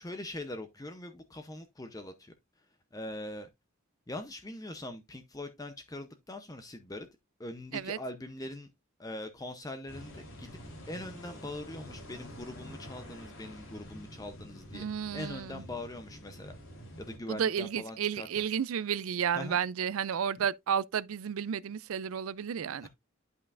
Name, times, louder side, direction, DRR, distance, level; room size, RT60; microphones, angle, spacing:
voice 1, 0.0-2.3 2.9-3.5 4.1-7.1 7.4-8.7 9.0-10.6 10.9-14.8 15.1-16.6 17.0-18.4 19.4-19.6 20.4-20.5 22.8-22.9, left 1 dB, 15° left, 0.6 m, -42 dB
sound 1, 9.9-17.2, equal, 70° left, 3.4 m, -48 dB
voice 2, 14.7-15.6 17.3-22.9, right 8 dB, 80° right, 0.4 m, -32 dB
11.0 x 5.5 x 2.5 m
head